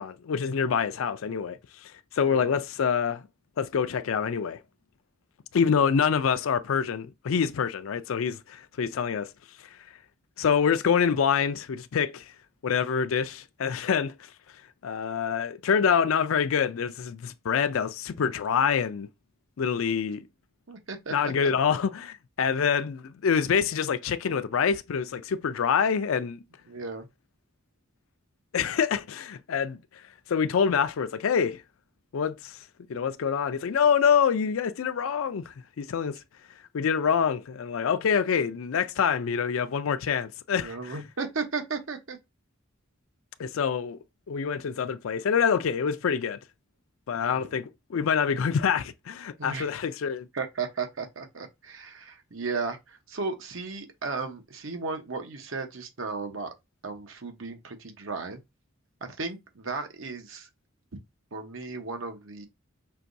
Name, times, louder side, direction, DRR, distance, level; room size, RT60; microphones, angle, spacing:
voice 1, 0.0-3.3 3.6-4.6 5.5-9.3 10.4-12.2 12.6-14.1 14.8-19.1 19.6-20.3 21.1-26.4 28.5-29.8 30.3-31.6 32.1-32.6 32.9-36.2 36.7-40.8 43.4-44.0 44.3-46.4 47.1-50.3, left 7 dB, 85° left, 0.4 m, -26 dB
voice 2, 20.7-21.5 26.7-27.1 40.5-42.2 47.2-47.5 49.4-49.7 50.3-56.5 56.8-58.4 59.0-60.5 61.3-62.5, right 4 dB, 80° right, 1.0 m, -35 dB
5.6 x 2.9 x 2.6 m
head